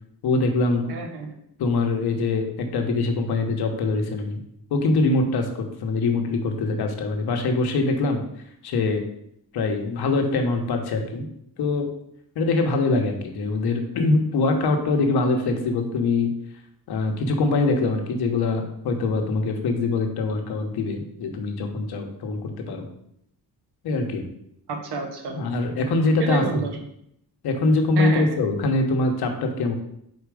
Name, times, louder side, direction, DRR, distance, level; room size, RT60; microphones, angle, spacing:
voice 1, 0.2-0.9 1.6-4.4 4.7-8.2 8.6-9.0 9.5-11.3 11.6-11.9 12.3-16.3 16.9-22.9 23.8-24.2 25.3-26.6 27.4-29.7, left 3 dB, 70° left, 4 dB, 1.1 m, -23 dB
voice 2, 0.9-1.4 24.7-25.4 26.2-26.7 28.0-28.3, right 4 dB, 80° right, 4 dB, 1.3 m, -29 dB
4.8 x 4.4 x 4.8 m, 0.73 s
cardioid pair, 155°, 39 cm